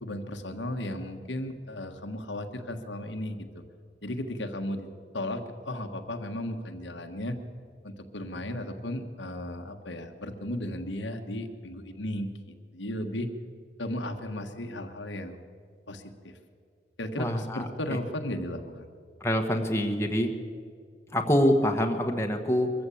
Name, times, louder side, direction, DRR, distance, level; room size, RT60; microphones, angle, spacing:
voice 1, 0.0-3.6 4.0-4.9 5.1-7.4 7.8-13.3 13.8-15.4 15.9-16.3 17.0-18.8, left 1 dB, 80° left, 5 dB, 1.5 m, -35 dB
voice 2, 17.2-18.0 19.2-20.3 21.1-22.7, equal, 15° left, 3 dB, 1.3 m, -25 dB
23.0 x 14.5 x 8.5 m, 2.1 s
head